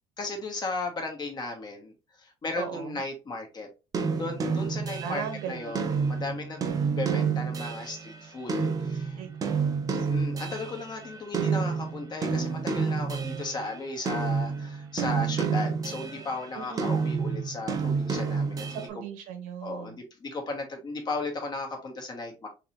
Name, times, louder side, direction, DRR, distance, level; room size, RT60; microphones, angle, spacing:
voice 1, 0.2-3.7 4.2-6.6 7.0-9.2 9.9-19.0 19.6-22.5, left 3 dB, 30° left, 1.2 m, -36 dB
voice 2, 2.6-3.0 5.0-6.2 9.2-10.1 16.5-17.1 18.7-20.0, right 8 dB, 90° right, 1.1 m, -38 dB
sound 1, 3.9-11.1 11.3-13.7 14.1-16.3 16.8-18.9, right 5 dB, 25° right, 0.6 m, -29 dB
3.8 x 2.9 x 3.1 m
cardioid pair, 135°, 14 cm